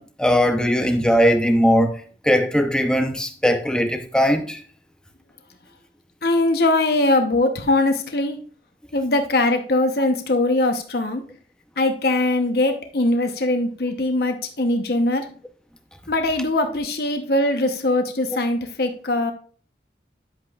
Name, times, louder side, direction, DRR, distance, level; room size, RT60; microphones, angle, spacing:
voice 1, 0.0-1.9 2.2-4.6, equal, 5° left, 0.7 m, -19 dB
voice 2, 6.2-8.4 8.9-11.2 11.8-15.2 16.1-19.3, left 2 dB, 55° left, 0.9 m, -21 dB
10.5 x 7.7 x 2.4 m
head